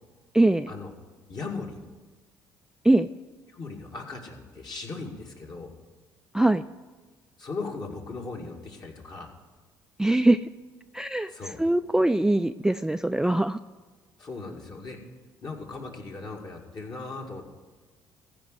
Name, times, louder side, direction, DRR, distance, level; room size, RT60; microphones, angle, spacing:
voice 1, 0.3-0.7 2.8-3.1 6.3-6.6 10.0-10.5 10.9-11.3 11.6-13.6, right 1 dB, 5° right, 10 dB, 0.3 m, -22 dB
voice 2, 1.3-1.8 3.5-5.7 7.4-9.3 11.3-11.6 14.2-15.0 15.4-17.5, left 3 dB, 50° left, 0 dB, 2.3 m, -38 dB
15.0 x 5.1 x 9.4 m, 1.3 s
hypercardioid pair, 60°, 9 cm